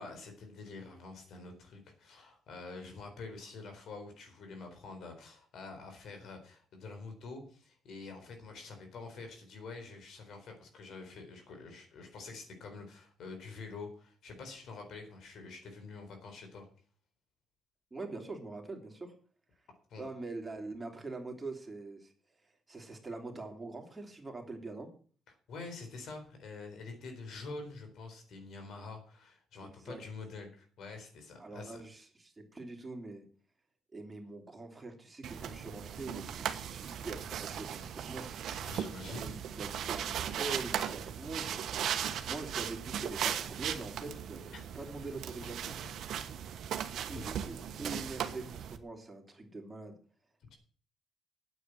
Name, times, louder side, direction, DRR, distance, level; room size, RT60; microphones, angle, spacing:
voice 1, 0.0-16.7 19.9-20.0 25.5-31.8 38.6-39.3 44.5-44.6 47.1-47.2, left 3 dB, 70° left, 5 dB, 4.2 m, -46 dB
voice 2, 17.9-19.1 20.0-22.1 22.7-24.9 29.6-30.0 31.4-33.3 33.9-38.3 39.0-45.7 46.8-50.0, right 3 dB, 20° right, 2 dB, 3.1 m, -44 dB
sound 1, 35.2-48.8, right 9 dB, 70° right, 1.2 m, -38 dB
9.2 x 8.3 x 7.8 m, 0.43 s
cardioid pair, 90°, 0 cm